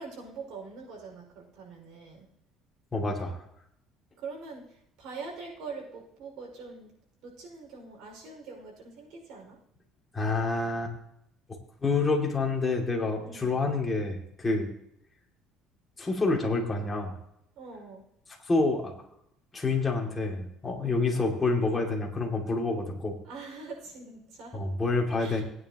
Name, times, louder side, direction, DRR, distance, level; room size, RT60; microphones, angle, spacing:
voice 1, 0.0-2.3 4.2-4.6 5.0-6.9 7.2-9.6 13.2-13.6 17.6-18.0 20.8-21.1 23.2-24.6 25.2-25.4, right 4 dB, 65° right, 0 dB, 5.4 m, -43 dB
voice 2, 2.9-3.4 10.1-10.9 11.8-14.7 16.0-17.1 18.5-18.9 19.5-23.2 24.5-25.4, left 3 dB, 15° left, -1 dB, 2.5 m, -28 dB
18.5 x 9.7 x 3.0 m, 0.76 s
cardioid pair, 150°, 0 cm